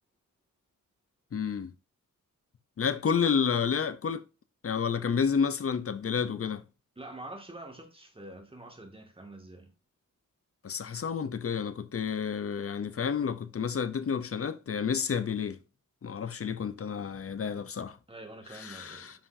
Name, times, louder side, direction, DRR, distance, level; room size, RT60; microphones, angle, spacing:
voice 1, 1.3-1.7 2.8-4.2 4.6-6.6 10.6-15.6 16.0-18.0 18.5-19.1, left 6 dB, 45° left, 0.7 m, -30 dB
voice 2, 7.0-9.7 18.1-19.1, right 1 dB, 15° right, 2.0 m, -46 dB
10.0 x 5.6 x 2.7 m
wide cardioid pair, 105°, 33 cm